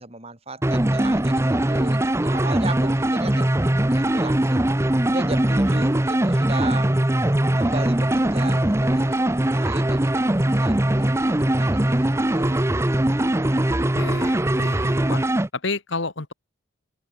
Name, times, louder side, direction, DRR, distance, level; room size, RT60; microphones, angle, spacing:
voice 1, 0.0-3.5 3.9-4.7 5.1-6.9 7.6-13.0 13.4-13.6, right 2 dB, 30° right, 4.3 m, -36 dB
sound 1, 0.6-15.5, right 1 dB, 15° right, 0.6 m, -21 dB
voice 2, 13.9-15.2 15.5-16.3, left 3 dB, 60° left, 1.7 m, -30 dB
open air
head